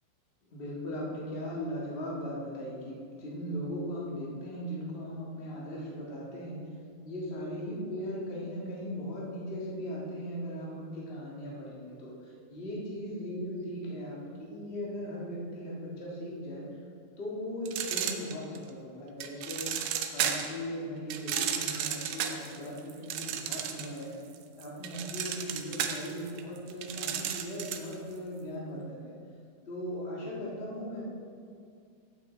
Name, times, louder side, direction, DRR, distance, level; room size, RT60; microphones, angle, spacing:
voice 1, 0.5-6.7 7.0-16.7 17.2-19.8 20.1-24.2 24.6-29.1 29.7-31.0, equal, 30° left, -5 dB, 1.1 m, -38 dB
sound 1, 17.7-18.7 19.2-20.6 21.1-24.0 24.3-27.9, right 9 dB, 80° right, 1.6 m, -33 dB
14.0 x 5.6 x 3.9 m, 2.2 s
omnidirectional pair, 3.9 m